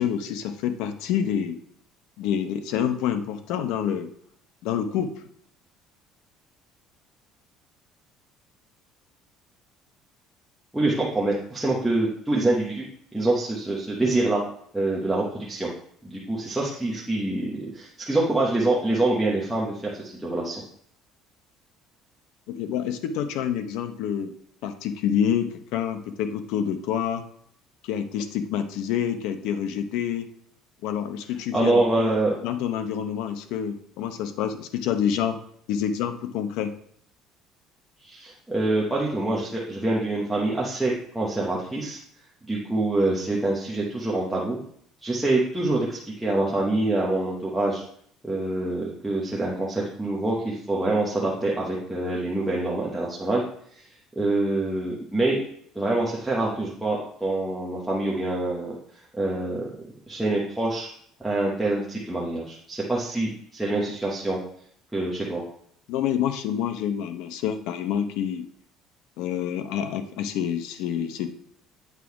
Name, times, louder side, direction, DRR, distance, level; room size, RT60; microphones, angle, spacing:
voice 1, 0.0-1.6 2.2-4.1 4.6-5.1 22.5-24.3 24.6-27.2 27.8-30.3 30.8-32.1 32.4-35.4 35.7-36.7 65.9-68.5 69.2-71.3, left 9 dB, 70° left, 8 dB, 0.7 m, -27 dB
voice 2, 10.7-12.8 13.1-14.4 14.7-15.7 16.0-20.6 31.5-32.3 38.0-42.0 42.5-44.6 45.0-47.8 48.2-53.4 54.2-55.4 55.7-58.7 59.1-59.6 60.1-60.9 61.2-64.4 64.9-65.4, right 2 dB, 5° right, -5 dB, 0.9 m, -25 dB
8.2 x 3.8 x 4.7 m, 0.64 s
cardioid pair, 180°, 0 cm